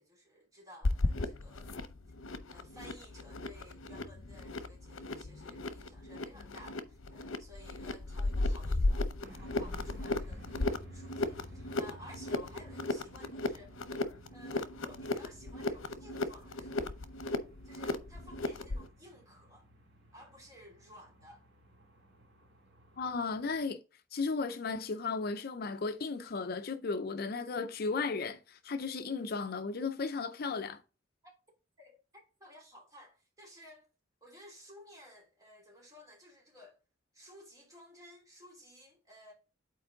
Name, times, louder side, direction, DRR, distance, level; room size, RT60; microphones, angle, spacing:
voice 1, 0.0-1.8 2.1-2.2 2.5-13.7 14.3-16.9 17.6-19.7 20.1-21.4 31.2-31.3 31.8-33.9 34.2-36.8 37.1-39.3, left 1 dB, 15° right, 3.0 m, -55 dB
sound 1, 0.8-18.9, left 2 dB, 85° left, 0.8 m, -36 dB
sound 2, 9.2-23.7, right 1 dB, 55° right, 2.0 m, -58 dB
voice 2, 23.0-23.8 24.1-30.8, left 4 dB, 50° left, 0.5 m, -35 dB
8.2 x 4.4 x 3.8 m
head